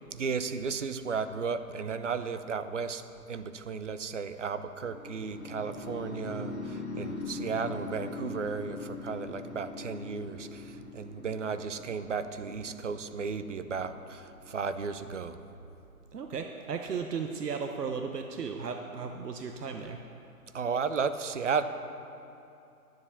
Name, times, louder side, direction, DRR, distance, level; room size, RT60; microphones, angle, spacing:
voice 1, 0.1-15.4 20.5-21.6, right 5 dB, 50° right, 11 dB, 0.6 m, -34 dB
sound 1, 4.8-14.8, left 3 dB, 45° left, 1.6 m, -41 dB
voice 2, 16.1-20.0, right 5 dB, 85° right, 5 dB, 0.9 m, -35 dB
11.0 x 7.5 x 7.0 m, 2.7 s
hypercardioid pair, 160°, 46 cm